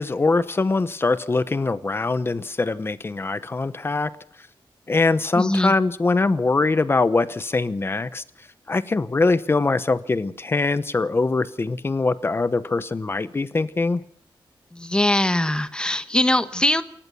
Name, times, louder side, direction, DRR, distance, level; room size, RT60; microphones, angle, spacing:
voice 1, 0.0-4.1 4.9-8.2 8.7-14.0, left 3 dB, 25° left, 14 dB, 0.8 m, -22 dB
voice 2, 5.3-5.7 14.7-16.8, left 1 dB, 10° left, 11 dB, 1.1 m, -21 dB
28.0 x 14.5 x 6.9 m, 0.63 s
wide cardioid pair, 170°, 9 cm